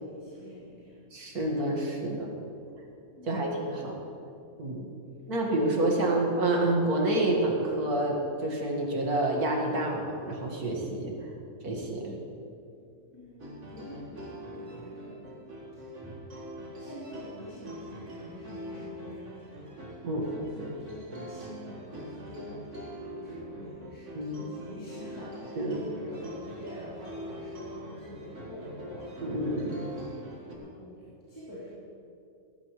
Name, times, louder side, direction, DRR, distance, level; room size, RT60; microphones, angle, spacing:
voice 1, 0.0-1.0 3.2-3.5 13.1-15.2 15.7-16.2 16.8-22.8 23.2-29.6 29.9-30.2 30.5-30.9 31.3-31.7, left 1 dB, 15° left, -12 dB, 4.0 m, -46 dB
voice 2, 1.1-2.3 3.3-4.0 4.6-4.9 5.3-11.1 11.6-12.1 20.0-20.2 24.1-24.4 25.6-25.8 29.2-29.8, right 1 dB, 85° right, -1 dB, 2.5 m, -28 dB
sound 1, 13.4-30.5, equal, 55° right, 2.2 m, -43 dB
16.0 x 15.5 x 3.3 m, 2.5 s
omnidirectional pair, 1.6 m